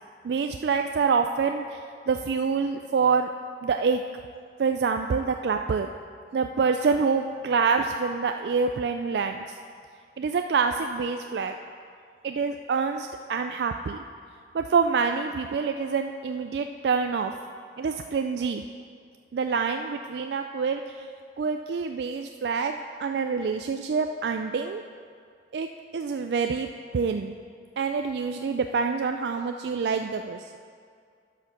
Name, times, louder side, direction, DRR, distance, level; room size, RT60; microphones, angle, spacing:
voice 1, 0.2-1.8 2.1-3.3 3.6-4.0 4.6-5.9 6.3-9.5 10.2-11.5 12.2-14.0 14.5-17.3 17.8-18.6 19.3-21.1 21.4-24.8 25.5-25.7 25.9-26.7 26.9-27.4 27.8-30.6, right 5 dB, 70° right, 6 dB, 0.3 m, -26 dB
11.0 x 5.7 x 6.0 m, 2.2 s
head